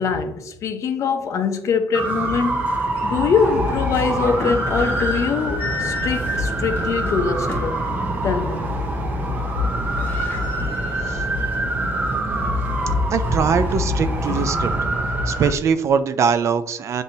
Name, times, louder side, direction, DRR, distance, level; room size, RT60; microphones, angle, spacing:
voice 1, 0.0-2.7 3.0-7.8 8.2-8.6 14.3-14.6, left 5 dB, 55° left, 0.6 m, -23 dB
sound 1, 1.9-15.5, equal, 25° right, 0.8 m, -24 dB
sound 2, 2.3-2.4 2.9-3.1 4.0-7.8 8.2-8.4 8.8-9.2 9.4-9.5 9.7-11.7 12.1-12.2 12.8-14.1, left 3 dB, 35° left, 1.0 m, -33 dB
voice 2, 12.1-12.7 13.1-14.7 15.3-17.0, right 6 dB, 50° right, 0.4 m, -22 dB
7.0 x 2.7 x 2.6 m
cardioid pair, 120°, 6 cm